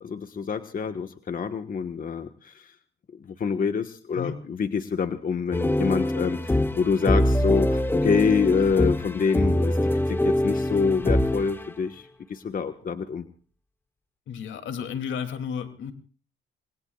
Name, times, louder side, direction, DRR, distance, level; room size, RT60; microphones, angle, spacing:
voice 1, 0.0-2.7 3.2-13.3, left 5 dB, 45° left, 7 dB, 1.4 m, -26 dB
sound 1, 5.5-11.7, left 1 dB, 10° left, 1.0 m, -24 dB
voice 2, 14.3-15.9, left 7 dB, 75° left, 7 dB, 2.7 m, -32 dB
28.5 x 21.0 x 2.4 m, 0.40 s
cardioid pair, 90°, 20 cm